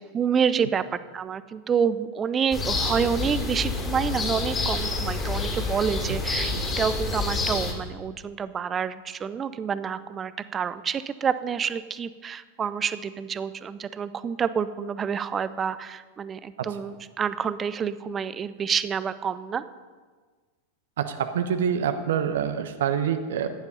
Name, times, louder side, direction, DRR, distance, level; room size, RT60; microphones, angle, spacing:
voice 1, 0.0-19.6, right 7 dB, 20° right, 14 dB, 0.6 m, -28 dB
sound 1, 2.5-7.7, left 3 dB, 20° left, 3.3 m, -28 dB
voice 2, 21.0-23.5, right 8 dB, 60° right, 8 dB, 0.9 m, -26 dB
15.0 x 10.5 x 5.6 m, 1.4 s
figure-of-eight pair, 90°, 0 cm